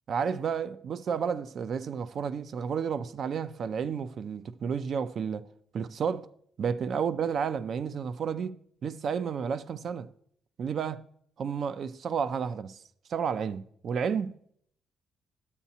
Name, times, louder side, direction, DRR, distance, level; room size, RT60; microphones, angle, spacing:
voice 1, 0.1-5.5 5.7-6.3 6.6-10.1 10.6-11.0 11.4-12.8 13.1-14.4, right 6 dB, 60° right, 0.4 m, -31 dB
12.0 x 8.2 x 2.8 m
cardioid pair, 90°, 0 cm